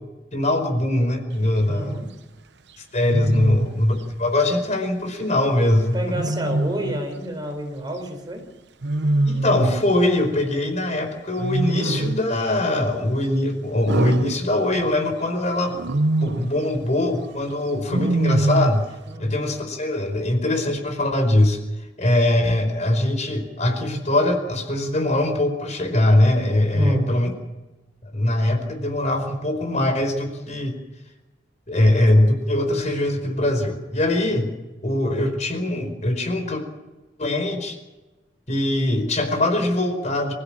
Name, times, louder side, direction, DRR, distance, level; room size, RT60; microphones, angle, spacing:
voice 1, 0.3-1.9 2.9-6.0 9.3-15.7 16.2-18.9 19.2-21.6 22.0-27.3 28.0-30.7 31.7-34.5 34.8-36.6 37.2-37.8 38.5-40.3, left 1 dB, 40° left, 5 dB, 4.9 m, -21 dB
Wild animals, 1.5-1.9 3.1-3.8 6.1-7.0 8.8-9.9 11.4-12.3 13.9-15.0 15.7-16.6 17.9-18.9, right 2 dB, 65° right, 0.9 m, -24 dB
voice 2, 1.6-2.1 3.3-3.5 5.9-8.4 19.1-19.4 26.7-27.1, right 1 dB, 25° right, 4 dB, 4.7 m, -29 dB
27.0 x 16.0 x 7.5 m, 1.1 s
head